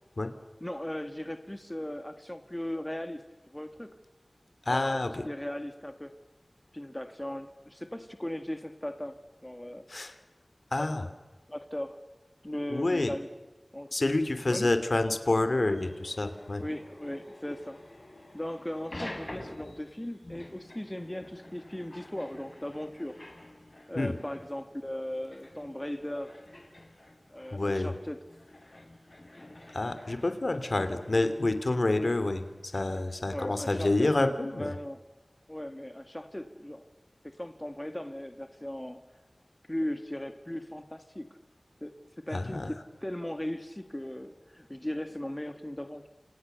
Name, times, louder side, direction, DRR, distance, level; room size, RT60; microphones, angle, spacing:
voice 1, 0.6-3.2 3.5-3.9 4.7-6.1 6.7-9.2 9.4-9.8 10.8-10.9 11.5-12.0 12.4-13.3 13.7-13.9 14.5-14.7 16.6-17.8 18.3-23.1 23.9-26.3 27.3-28.2 33.3-35.0 35.5-36.9 37.2-39.0 39.7-41.4 41.8-46.1, left 1 dB, 20° left, 8 dB, 1.7 m, -37 dB
voice 2, 4.7-5.2 9.9-10.1 10.7-11.0 12.7-13.1 13.9-16.6 23.9-24.1 27.5-27.9 29.7-32.4 32.7-34.7 42.3-42.7, left 2 dB, 65° left, 9 dB, 2.8 m, -28 dB
sound 1, 15.7-33.3, left 1 dB, 45° left, 4.5 m, -49 dB
29.5 x 27.5 x 6.9 m, 1.2 s
wide cardioid pair, 55°, 0 cm